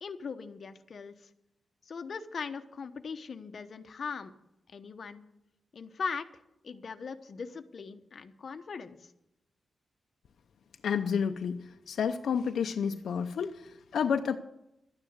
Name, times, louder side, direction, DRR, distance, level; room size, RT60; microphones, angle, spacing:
voice 1, 0.0-1.3 1.8-4.3 4.7-5.2 5.7-6.3 6.6-9.1, left 5 dB, 50° left, 8 dB, 1.0 m, -40 dB
voice 2, 10.8-14.4, left 7 dB, 85° left, 6 dB, 0.7 m, -30 dB
12.5 x 9.8 x 8.1 m, 0.84 s
wide cardioid pair, 150°, 0 cm